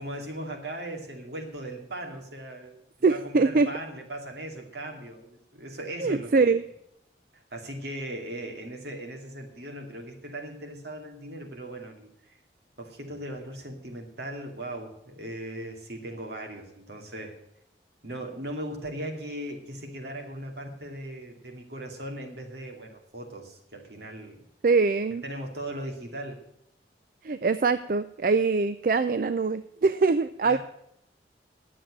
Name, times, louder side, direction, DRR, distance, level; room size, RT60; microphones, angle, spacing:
voice 1, 0.0-2.8 3.1-6.5 7.5-12.1 12.8-17.4 18.0-24.4 25.2-26.4 30.4-30.6, right 1 dB, 70° right, 2 dB, 2.4 m, -38 dB
voice 2, 3.0-3.7 6.0-6.6 24.6-25.2 27.2-30.6, right 4 dB, 50° right, 12 dB, 0.4 m, -23 dB
10.5 x 7.6 x 8.8 m, 0.77 s
head